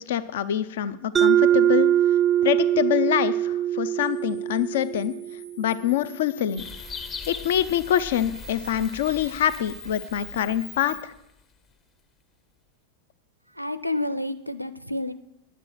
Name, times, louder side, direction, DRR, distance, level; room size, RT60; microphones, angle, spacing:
voice 1, 0.0-1.9 2.4-5.1 5.6-6.6 7.3-11.1, left 11 dB, 55° left, 14 dB, 0.5 m, -25 dB
Mallet percussion, 1.2-5.7, right 11 dB, 15° right, 0.3 m, -22 dB
Camera, 4.0-11.0, left 1 dB, 85° left, 1.5 m, -45 dB
sound 1, 6.6-11.6, left 5 dB, 30° left, 0.9 m, -41 dB
voice 2, 13.6-15.1, left 1 dB, 90° right, 15 dB, 0.5 m, -29 dB
10.5 x 7.5 x 7.2 m, 0.83 s
figure-of-eight pair, 90°, 0 cm